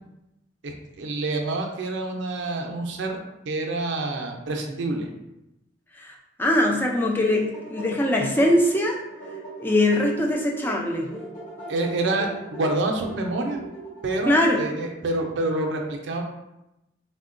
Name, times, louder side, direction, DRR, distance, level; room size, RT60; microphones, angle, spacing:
voice 1, 1.0-3.2 3.5-5.1 11.7-13.6 14.0-16.2, right 2 dB, 70° right, 2 dB, 0.4 m, -27 dB
voice 2, 6.0-9.0 9.6-11.1 14.3-14.6, left 1 dB, 10° left, 0 dB, 0.3 m, -22 dB
sound 1, 7.2-14.7, right 3 dB, 40° left, 1.3 m, -40 dB
3.6 x 2.1 x 2.4 m, 0.91 s
head